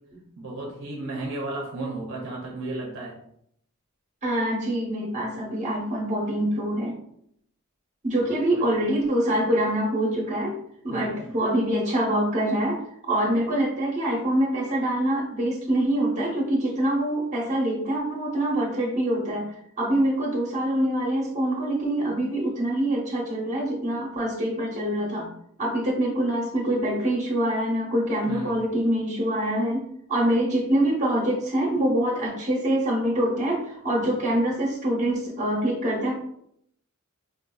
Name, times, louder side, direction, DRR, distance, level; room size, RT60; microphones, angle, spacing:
voice 1, 0.4-3.2 8.2-8.8 10.9-11.3 28.3-28.6, right 2 dB, 60° right, -2 dB, 0.6 m, -34 dB
voice 2, 4.2-7.0 8.0-10.6 10.8-25.3 25.6-36.2, right 1 dB, 35° right, -2 dB, 0.9 m, -25 dB
3.6 x 2.6 x 2.3 m, 0.72 s
head